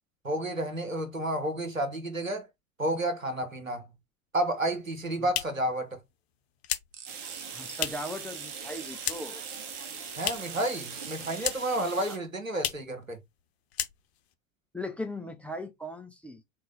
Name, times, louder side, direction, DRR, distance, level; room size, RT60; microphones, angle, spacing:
voice 1, 0.2-2.5 2.8-3.9 4.3-6.0 10.2-13.2, right 1 dB, 90° right, 1.2 m, -31 dB
sound 1, 4.8-8.2 8.5-9.5 9.7-10.7 10.9-11.9 12.1-12.2 12.5-13.0 13.3-13.4 13.7-14.3, left 11 dB, 55° left, 0.9 m, -35 dB
sound 2, 6.9-11.4, right 7 dB, 60° right, 1.1 m, -45 dB
sound 3, 7.1-12.2, right 5 dB, 45° right, 1.5 m, -42 dB
voice 2, 7.5-9.4 12.1-12.2 14.7-16.4, left 1 dB, 5° left, 0.5 m, -38 dB
3.9 x 3.1 x 3.8 m
figure-of-eight pair, 85°, 39 cm